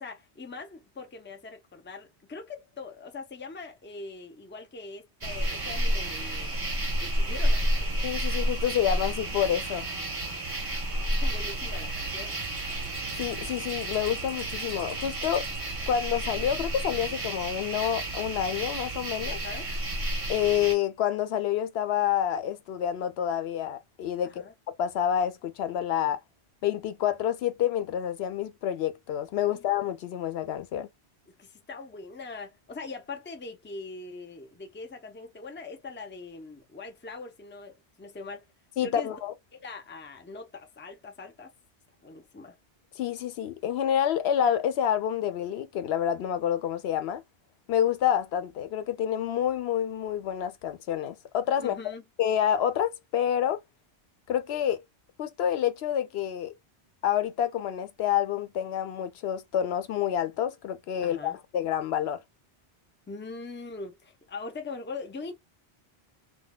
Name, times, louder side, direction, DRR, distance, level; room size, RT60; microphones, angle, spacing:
voice 1, 0.0-6.5 7.0-7.7 11.2-12.3 19.3-19.7 24.3-24.5 29.5-29.7 31.4-38.5 38.8-39.2 39.5-41.5 42.0-42.6 51.6-52.0 61.0-61.4 63.1-65.3, left 3 dB, 15° left, 0.5 m, -42 dB
sound 1, 5.2-20.8, right 1 dB, 30° right, 1.1 m, -31 dB
voice 2, 8.0-9.9 13.2-15.5 15.9-19.4 20.3-24.4 24.8-26.2 26.6-30.9 38.8-39.3 43.0-47.2 47.7-51.8 52.2-53.6 54.3-54.8 55.2-56.5 57.0-62.2, left 10 dB, 80° left, 0.8 m, -28 dB
3.8 x 2.2 x 2.2 m
omnidirectional pair, 1.1 m